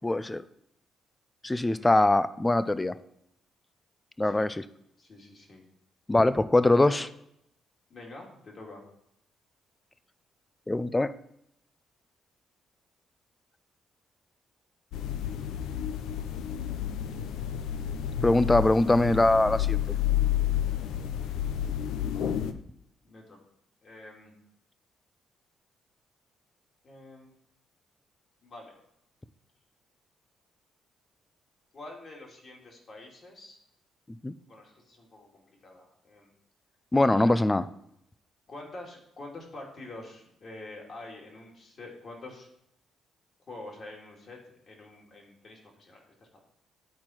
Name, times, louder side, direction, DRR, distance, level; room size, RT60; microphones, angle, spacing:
voice 1, 0.0-0.4 1.4-3.0 4.2-4.6 6.1-7.1 10.7-11.1 18.2-19.8 34.2-34.3 36.9-37.6, left 2 dB, 15° left, 15 dB, 0.4 m, -22 dB
voice 2, 1.4-2.2 4.2-4.5 5.0-5.6 6.7-7.0 7.9-8.8 23.0-23.4 23.8-24.3 26.8-27.3 28.4-28.7 31.7-33.6 34.5-36.3 37.1-37.3 38.5-42.5 43.5-44.4 44.7-46.3, left 2 dB, 45° left, -1 dB, 2.4 m, -46 dB
sound 1, 14.9-22.5, left 10 dB, 85° left, 0.5 m, -30 dB
10.5 x 4.4 x 4.4 m, 0.77 s
cardioid pair, 90°, 0 cm